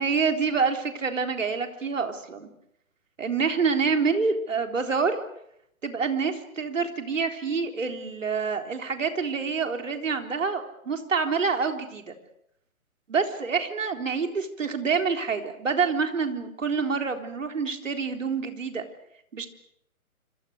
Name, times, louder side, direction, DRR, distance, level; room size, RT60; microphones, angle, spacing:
voice 1, 0.0-2.5 3.2-5.2 5.8-12.1 13.1-18.8 19.3-19.5, right 5 dB, 60° right, 5 dB, 4.0 m, -27 dB
27.0 x 26.5 x 6.6 m, 0.75 s
figure-of-eight pair, 130°, 44 cm